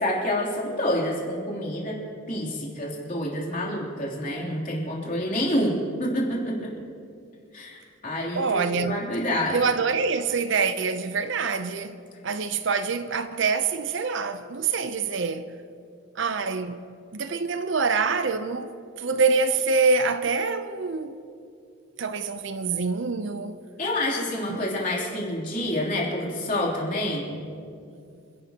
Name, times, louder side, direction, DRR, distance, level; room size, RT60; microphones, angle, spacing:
voice 1, 0.0-2.0 2.3-5.7 6.0-6.7 7.5-9.6 23.8-27.4, left 1 dB, 35° left, 3.1 m, -28 dB
voice 2, 8.4-9.0 9.5-15.5 16.2-16.8 17.1-21.2 22.0-23.6 24.5-24.7, right 4 dB, 60° right, 0.6 m, -25 dB
28.0 x 11.5 x 2.9 m
head